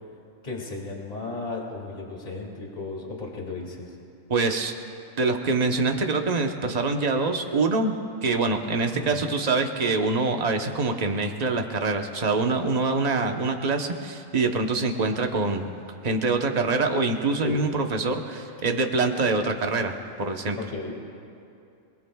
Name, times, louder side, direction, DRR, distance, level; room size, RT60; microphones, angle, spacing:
voice 1, 0.4-4.0 8.9-9.3 17.4-17.6 20.6-20.9, left 3 dB, 30° left, -1 dB, 2.3 m, -34 dB
voice 2, 4.3-4.7 5.2-8.0 8.2-15.7 16.0-20.6, right 3 dB, 35° right, 4 dB, 1.0 m, -25 dB
27.5 x 21.0 x 2.3 m, 2.6 s
omnidirectional pair, 1.3 m